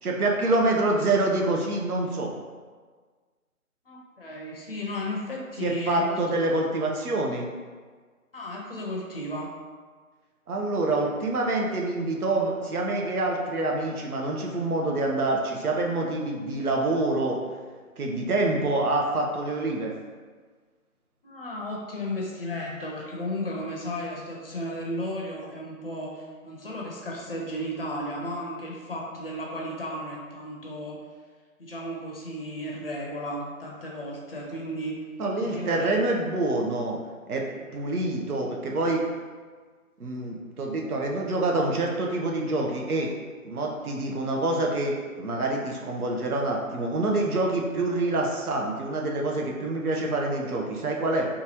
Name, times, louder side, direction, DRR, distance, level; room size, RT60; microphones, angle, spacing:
voice 1, 0.0-2.3 5.6-7.5 10.5-17.4 18.0-19.9 35.2-37.0 37.3-37.4 37.7-39.0 40.0-43.1 43.4-51.3, right 2 dB, 80° right, 0 dB, 0.7 m, -26 dB
voice 2, 3.9-6.4 8.3-9.5 21.2-31.0 31.6-35.0 35.4-35.9 37.5-37.7, left 1 dB, 40° left, -2 dB, 0.5 m, -34 dB
2.9 x 2.3 x 2.8 m, 1.5 s
figure-of-eight pair, 150°, 43 cm